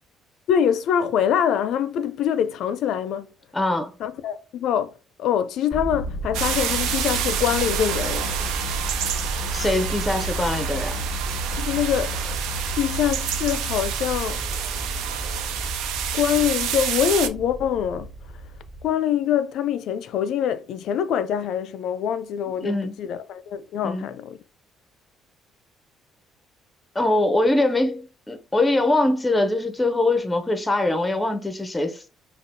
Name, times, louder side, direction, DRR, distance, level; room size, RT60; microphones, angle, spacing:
voice 1, 0.5-3.3 4.0-4.9 5.2-8.3 11.6-12.3 12.8-14.4 16.1-18.1 18.8-24.4, left 9 dB, 70° left, 0.4 m, -24 dB
voice 2, 3.5-3.9 9.5-11.0 22.6-22.9 23.8-24.1 26.9-32.1, left 2 dB, 10° left, 0.5 m, -23 dB
sound 1, 5.7-18.9, right 1 dB, 20° right, 0.7 m, -32 dB
sound 2, 6.3-17.3, right 9 dB, 85° right, 0.4 m, -29 dB
5.1 x 2.4 x 2.6 m
cardioid pair, 90°, 0 cm